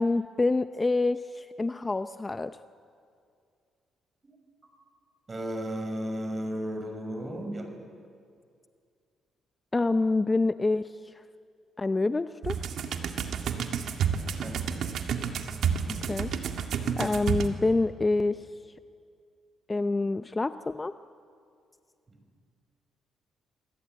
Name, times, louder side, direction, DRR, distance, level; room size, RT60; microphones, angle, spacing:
voice 1, 0.0-2.6 9.7-11.2 11.8-12.6 15.9-16.3 17.0-18.5 19.7-20.9, left 3 dB, 20° left, 11 dB, 0.6 m, -27 dB
voice 2, 5.3-7.7 13.0-13.9 14.4-15.1 22.1-22.2, equal, 25° right, 5 dB, 5.8 m, -36 dB
sound 1, 12.4-17.5, right 7 dB, 70° right, 2.0 m, -30 dB
27.5 x 21.0 x 9.2 m, 2.3 s
cardioid pair, 100°, 0 cm